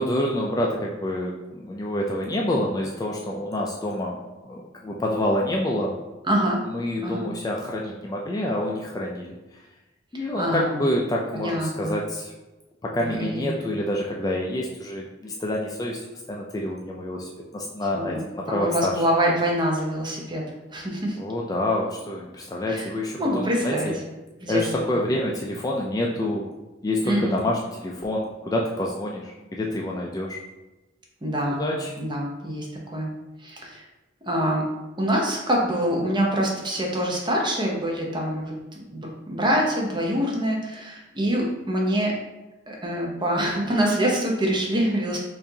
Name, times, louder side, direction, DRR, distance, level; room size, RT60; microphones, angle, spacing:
voice 1, 0.0-5.9 6.7-9.6 10.1-12.3 12.8-16.0 16.3-19.0 21.2-23.9 24.5-26.5 26.8-30.4 31.6-31.9, left 1 dB, 20° left, -1 dB, 0.3 m, -27 dB
voice 2, 6.2-6.6 7.0-7.2 10.1-10.9 11.3-12.0 13.0-13.5 17.9-20.4 20.7-21.2 22.7-22.9 23.2-23.9 24.4-24.6 27.0-27.4 31.2-31.6 32.0-33.1 33.4-33.8 34.3-34.7 35.0-38.5 38.9-42.2 42.7-45.2, equal, 25° right, -1 dB, 0.7 m, -25 dB
4.6 x 2.5 x 2.7 m, 1.1 s
head